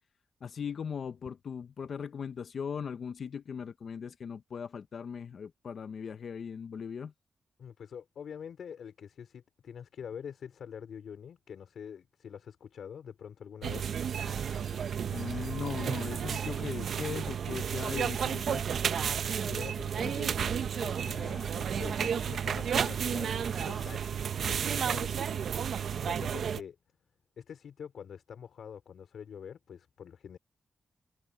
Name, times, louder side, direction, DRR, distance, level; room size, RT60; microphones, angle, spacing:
voice 1, 0.4-7.1 15.1-18.6, left 6 dB, 65° left, 0.5 m, -39 dB
voice 2, 7.6-13.9 19.4-25.3 26.0-26.8 27.4-30.4, left 7 dB, 85° left, 3.9 m, -45 dB
sound 1, 13.6-26.6, right 8 dB, 75° right, 0.7 m, -32 dB
sound 2, 14.1-24.3, left 1 dB, 10° left, 6.0 m, -54 dB
wide cardioid pair, 110°, 0 cm